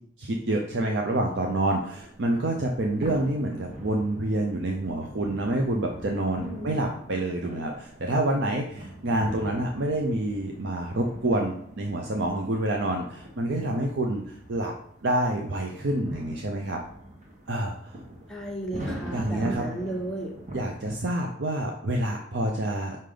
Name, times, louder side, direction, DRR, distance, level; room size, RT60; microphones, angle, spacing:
voice 1, 0.2-14.7 15.0-16.8 17.5-18.0 19.1-19.7 20.5-23.0, right 1 dB, 65° right, 1 dB, 0.6 m, -27 dB
sound 1, 1.0-21.0, right 1 dB, 40° right, 1.4 m, -41 dB
voice 2, 6.4-7.0 18.3-20.3, right 1 dB, 5° left, -3 dB, 1.2 m, -35 dB
5.5 x 5.0 x 3.8 m, 0.67 s
head